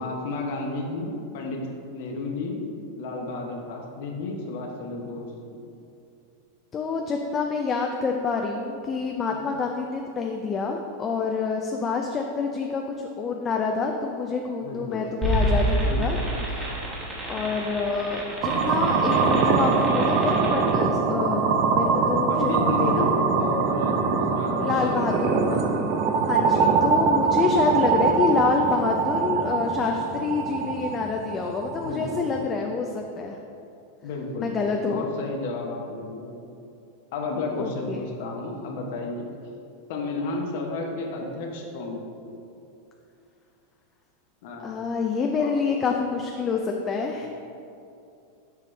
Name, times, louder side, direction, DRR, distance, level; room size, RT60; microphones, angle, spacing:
voice 1, 0.0-1.6 1.9-2.6 3.0-5.3 9.3-9.4 14.6-15.0 15.8-16.4 22.3-25.9 31.8-32.3 34.0-36.4 37.1-39.2 39.9-42.3 44.4-44.9 45.4-45.5 47.1-47.3, left 3 dB, 65° left, 1 dB, 1.0 m, -32 dB
voice 2, 6.7-16.2 17.3-23.1 24.6-25.5 26.3-33.4 34.4-35.0 37.6-38.1 44.6-47.3, left 4 dB, 25° left, 2 dB, 0.4 m, -27 dB
sound 1, 15.2-20.7, right 1 dB, 20° right, 1.3 m, -28 dB
sound 2, 18.4-32.4, right 5 dB, 45° right, 0.6 m, -23 dB
6.7 x 4.7 x 3.3 m, 2.6 s
supercardioid pair, 130°, 0 cm